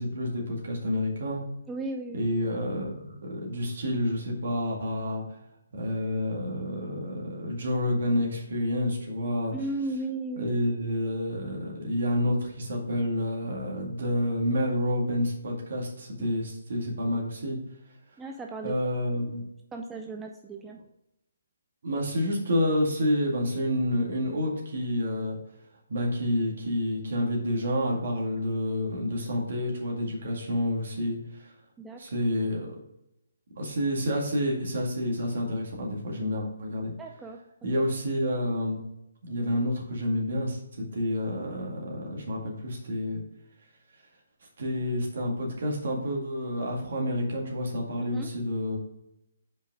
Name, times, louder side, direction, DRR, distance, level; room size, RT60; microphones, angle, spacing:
voice 1, 0.0-1.4 2.1-5.2 5.7-9.5 10.4-17.6 18.6-19.4 21.8-25.4 25.9-31.5 32.0-32.8 33.6-36.9 37.6-38.8 39.2-43.2 44.6-48.8, left 1 dB, 55° right, -1 dB, 2.0 m, -29 dB
voice 2, 1.7-2.3 9.5-10.6 18.2-18.7 19.7-20.8 31.8-32.0 37.0-37.4 48.0-48.3, right 2 dB, 10° right, 2 dB, 0.4 m, -35 dB
5.4 x 5.1 x 4.8 m, 0.85 s
figure-of-eight pair, 135°, 0 cm